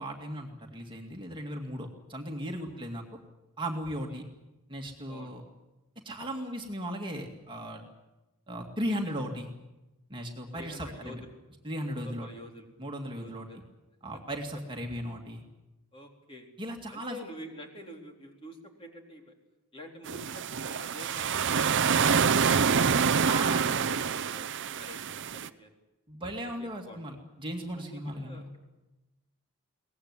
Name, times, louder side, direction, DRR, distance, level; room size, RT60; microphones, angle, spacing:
voice 1, 0.0-3.0 3.6-4.2 4.7-5.4 6.0-7.9 8.5-9.5 10.1-11.2 11.6-12.3 12.8-13.5 14.0-15.4 16.6-17.2 23.2-23.6 26.1-28.5, equal, 20° right, 1 dB, 2.3 m, -36 dB
voice 2, 5.1-5.5 9.0-9.1 10.5-11.3 11.9-12.7 13.2-13.7 14.1-14.2 15.9-16.5 16.9-19.3 19.7-22.6 23.4-25.0 25.3-25.7 26.2-27.0 27.7-28.6, left 1 dB, 25° left, 2 dB, 3.9 m, -48 dB
sound 1, 20.1-25.5, right 6 dB, 55° right, 0.8 m, -26 dB
23.5 x 18.5 x 9.7 m, 1.0 s
head